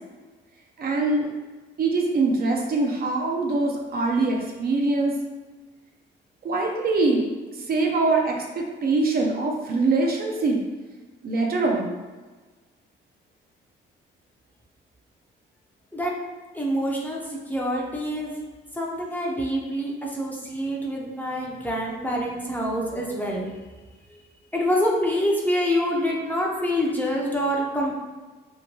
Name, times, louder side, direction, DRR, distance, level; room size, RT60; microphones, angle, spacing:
voice 1, 0.8-1.3 1.8-5.2 6.4-10.6 11.2-12.0, right 3 dB, 50° right, 0 dB, 0.5 m, -23 dB
voice 2, 16.5-17.2 17.5-18.4 18.8-23.5 24.5-27.9, equal, 10° left, -3 dB, 0.5 m, -26 dB
2.8 x 2.2 x 2.9 m, 1.3 s
cardioid pair, 90°, 20 cm